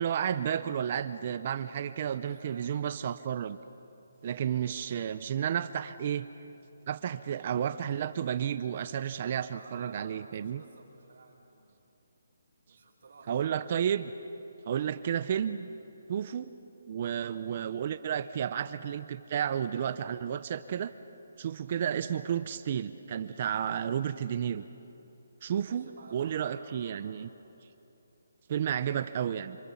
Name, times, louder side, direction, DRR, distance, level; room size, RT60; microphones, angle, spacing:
voice 1, 0.0-3.6 4.2-6.3 6.9-10.6 13.3-14.1 14.7-15.7 16.1-16.5 16.9-20.9 21.4-24.7 25.4-25.9 26.1-27.3 28.5-29.6, right 9 dB, 30° right, 12 dB, 0.5 m, -32 dB
voice 2, 2.3-2.9 9.5-11.8 12.7-13.4 16.1-16.3 25.5-27.3, right 3 dB, 50° right, -1 dB, 5.4 m, -54 dB
28.5 x 26.5 x 7.0 m, 2.8 s
hypercardioid pair, 175°, 0 cm